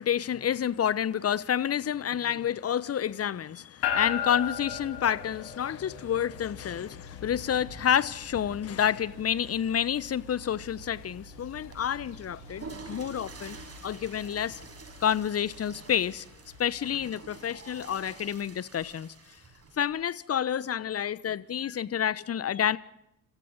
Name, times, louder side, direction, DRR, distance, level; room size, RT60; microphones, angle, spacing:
voice 1, 0.0-13.6 13.8-14.6 15.0-16.2 16.6-19.1 19.8-22.8, left 9 dB, 35° left, 1.1 m, -29 dB
sound 1, 3.8-18.1, left 8 dB, 65° left, 5.4 m, -40 dB
Water / Toilet flush, 11.6-19.9, right 4 dB, 35° right, 6.5 m, -48 dB
28.0 x 27.5 x 4.1 m
figure-of-eight pair, 45°, 40 cm